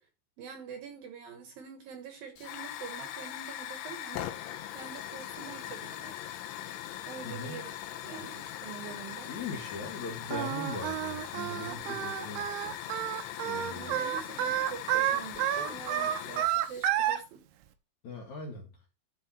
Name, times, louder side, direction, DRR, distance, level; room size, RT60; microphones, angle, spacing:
voice 1, 0.4-6.4 7.1-7.7 8.0-9.3 11.7-12.0 13.5-17.4, right 7 dB, 65° right, 2.7 m, -45 dB
Hiss / Fire, 2.4-16.8, left 12 dB, 90° left, 3.3 m, -41 dB
voice 2, 7.2-7.6 9.3-12.7 13.4-14.0 18.0-18.7, left 3 dB, 50° left, 2.6 m, -40 dB
Singing, 10.3-17.2, right 11 dB, 80° right, 3.3 m, -30 dB
11.5 x 5.7 x 4.4 m
omnidirectional pair, 5.4 m